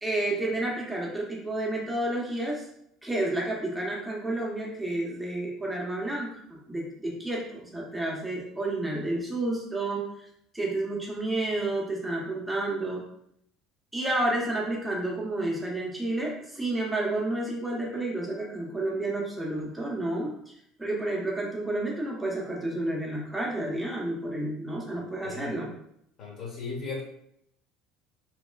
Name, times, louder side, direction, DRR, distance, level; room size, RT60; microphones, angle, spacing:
voice 1, 0.0-2.7 3.0-10.3 10.5-13.0 13.9-20.5 20.8-25.7, right 2 dB, 10° right, -3 dB, 0.7 m, -30 dB
voice 2, 24.9-25.7 26.2-27.0, left 4 dB, 50° left, -4 dB, 1.0 m, -37 dB
3.1 x 2.2 x 2.2 m, 0.72 s
hypercardioid pair, 65°, 0 cm